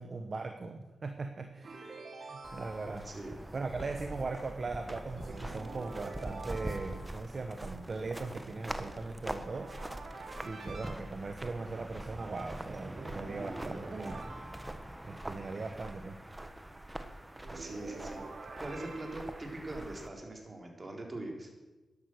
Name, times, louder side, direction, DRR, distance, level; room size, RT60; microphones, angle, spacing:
voice 1, 0.0-3.1 3.5-9.7 10.4-14.2 15.0-16.2, right 3 dB, 50° right, 6 dB, 1.0 m, -39 dB
sound 1, 1.6-3.2 5.2-7.3 9.5-11.0 13.0-15.1 17.4-19.6, right 3 dB, 65° right, 2.2 m, -47 dB
sound 2, 2.4-20.1, right 1 dB, 15° right, 1.3 m, -43 dB
voice 2, 17.5-21.5, right 2 dB, 35° right, 1 dB, 4.0 m, -42 dB
12.5 x 11.0 x 6.5 m, 1.2 s
supercardioid pair, 45°, 0 cm